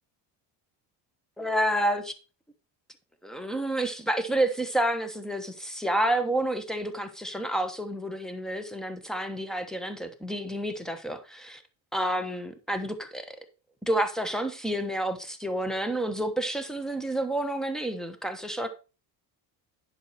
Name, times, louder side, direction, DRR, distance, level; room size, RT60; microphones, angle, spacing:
voice 1, 1.4-2.1 3.2-11.6 11.9-13.4 13.8-18.7, right 1 dB, ahead, 1.1 m, -29 dB
10.5 x 5.6 x 4.6 m
cardioid pair, 140°, 42 cm